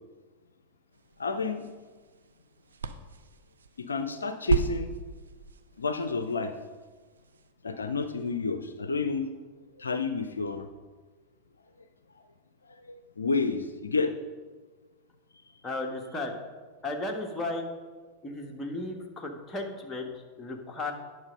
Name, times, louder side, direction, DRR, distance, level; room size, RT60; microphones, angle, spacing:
sound 1, 0.9-7.5, right 5 dB, 70° right, 0.5 m, -37 dB
voice 1, 1.2-1.7 3.8-4.9 5.8-6.5 7.6-9.2 9.8-10.7 12.7-14.1, left 4 dB, 75° left, 9 dB, 0.5 m, -30 dB
voice 2, 15.6-16.4 16.8-17.6 18.2-20.9, left 2 dB, 15° left, 1 dB, 1.4 m, -35 dB
9.7 x 6.0 x 5.2 m, 1.4 s
figure-of-eight pair, 90°, 0 cm